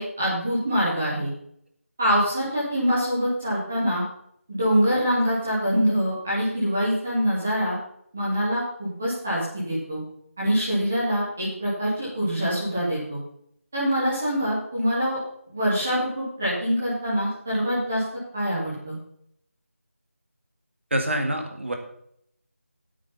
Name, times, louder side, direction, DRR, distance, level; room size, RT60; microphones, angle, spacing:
voice 1, 0.0-1.3 2.0-4.0 4.5-7.8 8.1-10.0 10.4-13.2 13.7-15.2 15.5-18.0 18.3-19.0, equal, 5° right, -7 dB, 0.7 m, -24 dB
voice 2, 20.9-21.8, right 1 dB, 55° right, 4 dB, 1.9 m, -26 dB
8.7 x 8.5 x 5.6 m, 0.70 s
figure-of-eight pair, 180°, 8 cm